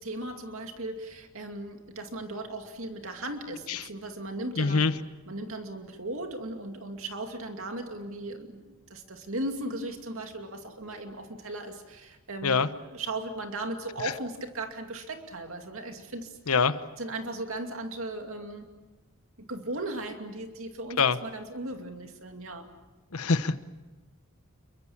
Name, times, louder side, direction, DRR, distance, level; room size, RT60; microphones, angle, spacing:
voice 1, 0.0-4.9 5.3-16.6 17.0-18.7 19.4-22.7, right 2 dB, 65° right, 4 dB, 2.5 m, -37 dB
voice 2, 4.6-4.9 12.4-12.7 16.5-16.7 21.0-21.2 23.1-23.6, left 4 dB, 90° left, 12 dB, 1.1 m, -24 dB
29.0 x 23.0 x 7.3 m, 1.2 s
head